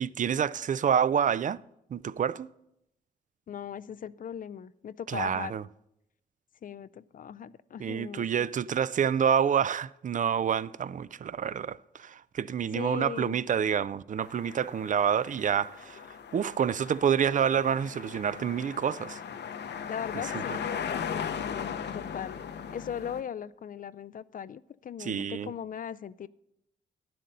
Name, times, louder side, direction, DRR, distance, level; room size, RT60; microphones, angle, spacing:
voice 1, 0.0-1.6 1.9-2.5 5.1-5.6 7.8-16.0 16.3-19.2 25.0-25.5, right 8 dB, 45° right, 0.4 m, -28 dB
voice 2, 3.5-5.5 6.6-8.5 12.7-13.4 19.9-20.7 21.1-22.4 22.7-26.3, left 8 dB, 45° left, 0.4 m, -39 dB
sound 1, 14.2-23.2, left 7 dB, 65° left, 0.8 m, -38 dB
9.9 x 7.7 x 5.4 m
cardioid pair, 60°, 19 cm